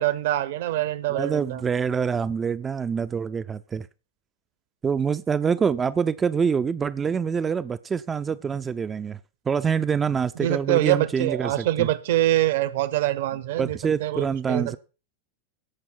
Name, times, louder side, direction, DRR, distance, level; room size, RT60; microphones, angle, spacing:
voice 1, 0.0-1.6 10.4-14.8, right 14 dB, 55° right, 1.1 m, -24 dB
voice 2, 1.1-3.9 4.8-9.2 9.5-11.9 13.6-14.8, right 6 dB, 20° right, 0.6 m, -25 dB
16.5 x 6.1 x 5.9 m
figure-of-eight pair, 90°, 0 cm